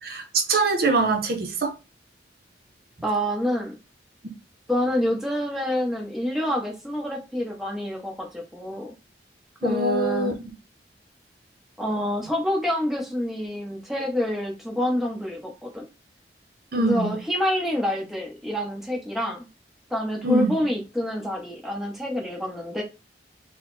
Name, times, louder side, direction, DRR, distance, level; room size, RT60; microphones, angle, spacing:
voice 1, 0.0-1.7 9.6-10.4 16.7-17.2 20.2-20.6, right 3 dB, 55° right, 0.7 m, -23 dB
voice 2, 3.0-3.7 4.7-8.9 9.6-10.3 11.8-15.9 16.7-19.5 19.9-22.8, left 1 dB, ahead, 0.9 m, -27 dB
4.0 x 2.1 x 4.0 m
head